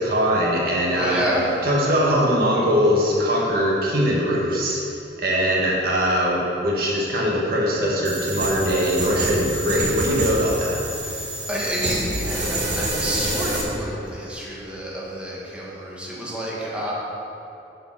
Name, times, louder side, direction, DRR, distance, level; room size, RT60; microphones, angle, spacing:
voice 1, 0.0-1.3 1.6-4.8 5.2-10.8, equal, 60° right, -3 dB, 1.7 m, -21 dB
voice 2, 0.9-1.5 11.0-16.9, equal, 5° right, -7 dB, 1.7 m, -29 dB
sound 1, 8.0-13.6, right 1 dB, 40° right, 1.4 m, -27 dB
11.0 x 5.5 x 5.9 m, 2.8 s
head